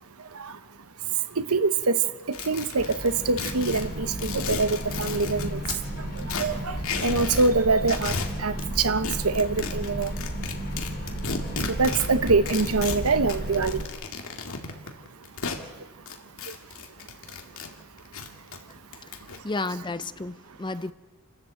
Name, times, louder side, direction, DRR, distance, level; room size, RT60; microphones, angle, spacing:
voice 1, 1.4-2.0 2.5-5.6 6.4-6.8 7.0-8.1 8.4-10.1 11.7-13.8, right 3 dB, 70° right, 0.9 m, -24 dB
sound 1, 2.3-5.8 6.2-7.5 7.8-8.7 9.0-15.6 16.1-17.7 18.0-19.4, left 4 dB, 65° left, 2.2 m, -34 dB
sound 2, 2.7-13.8, left 1 dB, 45° left, 2.5 m, -40 dB
sound 3, 3.1-13.9, right 1 dB, 40° right, 1.4 m, -34 dB
voice 2, 19.0-20.9, left 2 dB, 20° left, 0.6 m, -33 dB
29.0 x 12.5 x 7.8 m
head